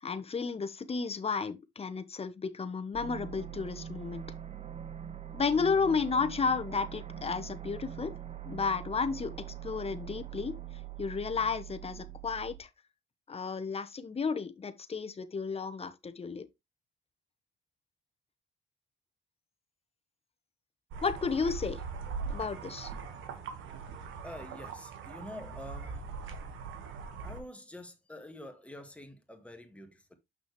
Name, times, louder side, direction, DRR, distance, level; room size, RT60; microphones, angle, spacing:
voice 1, 0.0-4.2 5.3-8.1 8.5-9.3 9.6-10.5 11.0-12.7 13.3-16.5 21.0-21.8 22.3-22.9, left 5 dB, 30° left, 1.0 m, -32 dB
sound 1, 2.9-12.6, right 10 dB, 35° right, 0.8 m, -43 dB
sound 2, 20.9-27.4, right 5 dB, 80° right, 1.5 m, -41 dB
voice 2, 24.2-26.1 27.2-30.2, left 1 dB, 5° left, 1.9 m, -47 dB
6.8 x 5.9 x 3.1 m
cardioid pair, 90°, 20 cm